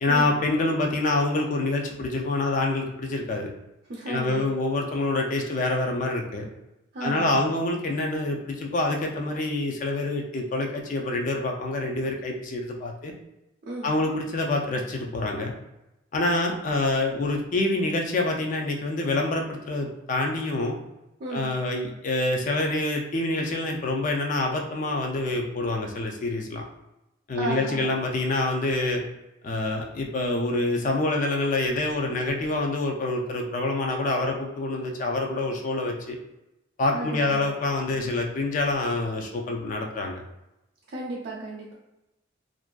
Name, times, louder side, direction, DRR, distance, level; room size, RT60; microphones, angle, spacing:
voice 1, 0.0-3.5 4.1-6.4 7.0-13.1 13.8-15.5 16.1-20.8 21.3-26.6 27.3-29.0 29.4-36.2 36.8-40.2, left 2 dB, 40° left, 2 dB, 0.3 m, -26 dB
voice 2, 3.9-4.4 6.9-7.5 13.6-13.9 21.2-21.5 27.3-27.9 36.9-37.5 40.9-41.7, right 2 dB, 45° right, -4 dB, 0.4 m, -34 dB
2.5 x 2.2 x 2.3 m, 0.93 s
head